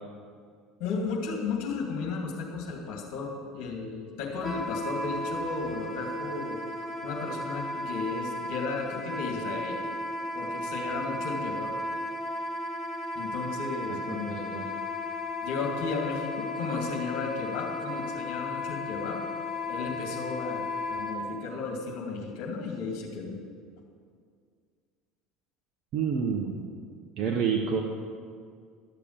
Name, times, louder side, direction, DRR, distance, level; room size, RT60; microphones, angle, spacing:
voice 1, 0.8-9.8 10.3-11.7 13.1-14.5 15.4-19.2 19.7-23.4, left 4 dB, 55° left, 0 dB, 2.6 m, -34 dB
Wind instrument woodwind instrument, 4.4-21.2, left 2 dB, 20° left, 1.3 m, -35 dB
voice 2, 14.1-14.7 25.9-26.6 27.2-27.8, right 6 dB, 50° right, 2 dB, 0.9 m, -28 dB
12.0 x 6.8 x 6.8 m, 2.1 s
figure-of-eight pair, 70°, 0 cm